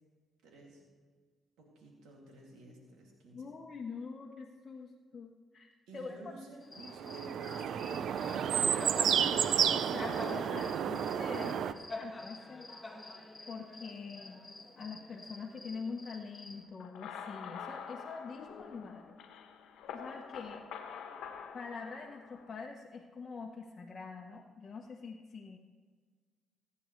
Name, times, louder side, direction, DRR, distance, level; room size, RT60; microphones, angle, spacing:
voice 1, 0.4-0.9 1.6-3.4 5.9-9.5, right 2 dB, 90° right, -1 dB, 2.5 m, -51 dB
voice 2, 3.3-6.3 9.7-12.7 13.5-14.4 14.8-19.1 19.9-20.7 21.5-25.6, left 4 dB, 40° left, -1 dB, 1.0 m, -45 dB
Cricket, 6.6-16.6, left 2 dB, 10° left, 1.9 m, -47 dB
sound 1, 6.9-11.7, right 8 dB, 70° right, 0.4 m, -31 dB
sound 2, 16.8-22.6, left 7 dB, 85° left, 1.1 m, -46 dB
22.5 x 9.4 x 3.2 m, 1.5 s
cardioid pair, 90°, 0 cm